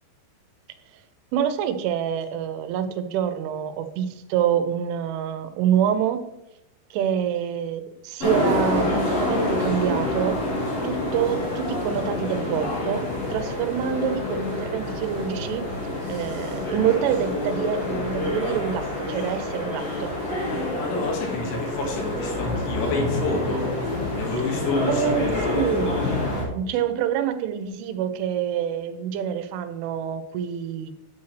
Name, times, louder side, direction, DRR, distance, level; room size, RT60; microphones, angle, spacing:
voice 1, 1.3-6.2 6.9-10.4 10.8-15.6 16.1-20.1 24.9-25.9 26.5-30.9, right 9 dB, 85° right, 9 dB, 3.2 m, -26 dB
sound 1, 8.2-26.4, left 1 dB, 35° left, 3.6 m, -27 dB
voice 2, 20.5-23.7 24.2-25.8, left 3 dB, 75° left, 1 dB, 4.1 m, -29 dB
10.0 x 7.0 x 3.3 m, 0.90 s
omnidirectional pair, 5.5 m